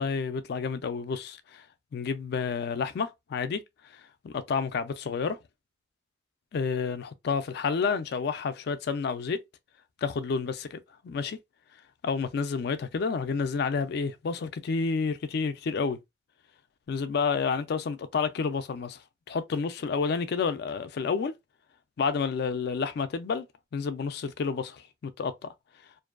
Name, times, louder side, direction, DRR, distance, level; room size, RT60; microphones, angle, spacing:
voice 1, 0.0-1.7 1.9-5.4 6.5-9.4 10.0-10.8 11.0-11.4 12.0-16.0 16.9-21.3 22.0-23.5 23.7-25.5, left 5 dB, 55° left, 0.3 m, -30 dB
2.5 x 2.2 x 2.3 m
head